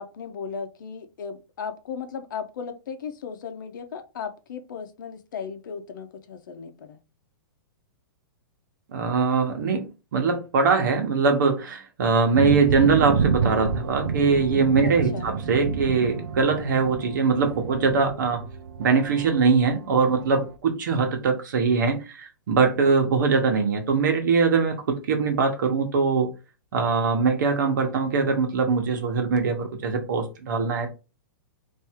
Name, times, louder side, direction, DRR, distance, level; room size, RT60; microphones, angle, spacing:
voice 1, 0.0-7.0 14.8-15.3, left 6 dB, 60° left, 0.8 m, -36 dB
voice 2, 8.9-18.4 18.8-26.3 26.7-30.9, right 4 dB, 55° right, 1.2 m, -22 dB
sound 1, 12.3-20.5, right 6 dB, 90° right, 0.6 m, -29 dB
3.5 x 2.7 x 4.5 m
hypercardioid pair, 175°, 12 cm